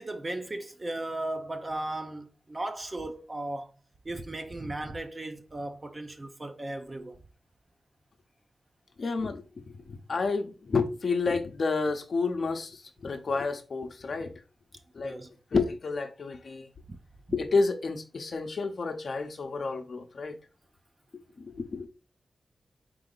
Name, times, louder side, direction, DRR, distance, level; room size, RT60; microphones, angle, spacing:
voice 1, 0.0-3.7 4.0-7.2 15.0-15.3 16.9-17.0, right 1 dB, 30° right, 0.8 m, -36 dB
voice 2, 9.0-14.3 14.9-15.2 15.5-16.7 17.3-20.4 21.4-21.9, left 4 dB, 65° left, 0.8 m, -30 dB
4.6 x 2.8 x 3.9 m
cardioid pair, 70°, 0 cm